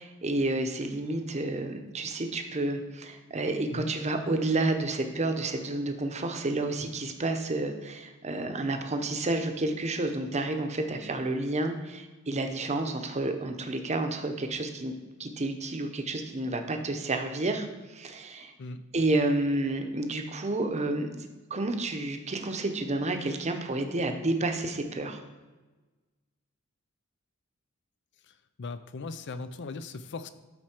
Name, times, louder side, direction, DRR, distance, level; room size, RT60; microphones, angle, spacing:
voice 1, 0.0-14.9 15.2-18.5 18.9-25.2, right 2 dB, 30° right, 6 dB, 0.8 m, -30 dB
voice 2, 28.6-30.3, left 3 dB, 55° left, 12 dB, 0.5 m, -38 dB
12.5 x 4.3 x 4.5 m, 1.2 s
head